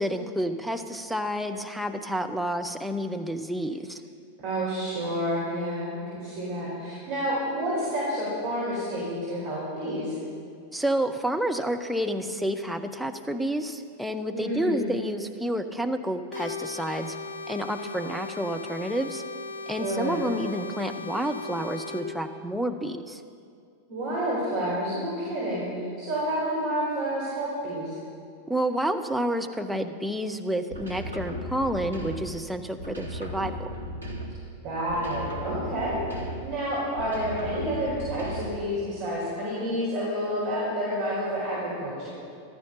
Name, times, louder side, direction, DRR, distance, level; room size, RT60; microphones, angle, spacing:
voice 1, 0.0-4.0 10.7-17.2 17.5-19.2 19.7-23.2 28.5-33.7, right 1 dB, ahead, 5 dB, 0.8 m, -29 dB
voice 2, 4.4-10.1 14.3-14.8 19.8-20.2 23.9-27.9 34.6-42.1, equal, 45° right, -8 dB, 4.6 m, -29 dB
sound 1, 16.3-22.0, left 4 dB, 65° left, 1.7 m, -37 dB
sound 2, 30.7-32.4 32.8-34.5 34.9-36.6 37.0-38.7, equal, 85° right, 1.7 m, -36 dB
14.0 x 13.5 x 5.6 m, 2.3 s
figure-of-eight pair, 90°, 0 cm